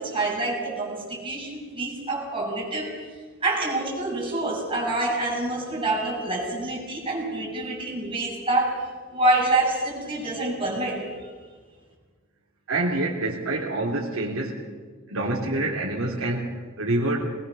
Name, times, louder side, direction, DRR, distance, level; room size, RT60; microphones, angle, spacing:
voice 1, 0.0-2.9 3.4-8.8 9.1-11.3, right 2 dB, 25° right, -4 dB, 7.8 m, -26 dB
voice 2, 12.7-14.6 15.1-17.4, right 2 dB, 70° right, -4 dB, 3.2 m, -27 dB
21.0 x 21.0 x 6.9 m, 1.5 s
head